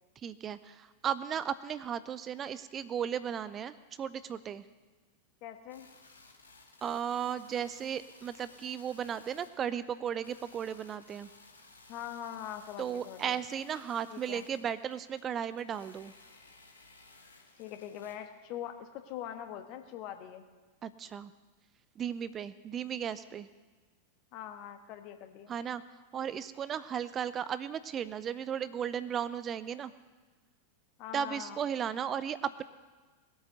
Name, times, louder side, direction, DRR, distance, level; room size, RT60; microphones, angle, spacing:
voice 1, 0.2-4.6 6.8-11.3 12.8-16.1 20.8-21.3 22.0-23.5 25.5-25.8 26.1-29.9 31.1-32.6, right 8 dB, 25° right, 15 dB, 0.5 m, -35 dB
voice 2, 5.4-5.9 11.9-13.4 14.1-14.4 17.6-20.5 24.3-25.5 31.0-31.6, left 10 dB, 40° left, 7 dB, 1.3 m, -43 dB
sound 1, 5.7-18.1, left 3 dB, 80° left, 2.0 m, -58 dB
19.5 x 8.7 x 6.5 m, 1.3 s
figure-of-eight pair, 90°, 0 cm